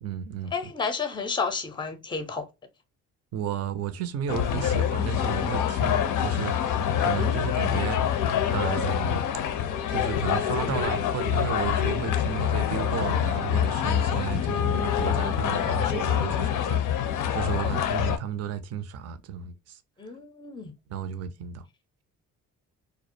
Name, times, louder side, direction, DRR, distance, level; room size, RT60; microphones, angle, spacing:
voice 1, 0.0-0.5 3.3-8.2 8.5-9.5 9.9-19.8 20.9-21.6, right 9 dB, 50° right, 0.4 m, -33 dB
voice 2, 0.5-2.5 14.1-14.4 15.0-15.8 17.6-17.8 20.0-20.7, left 5 dB, 15° left, 0.5 m, -32 dB
sound 1, 4.3-18.2, left 9 dB, 70° left, 0.5 m, -26 dB
2.4 x 2.0 x 2.6 m
cardioid pair, 80°, 32 cm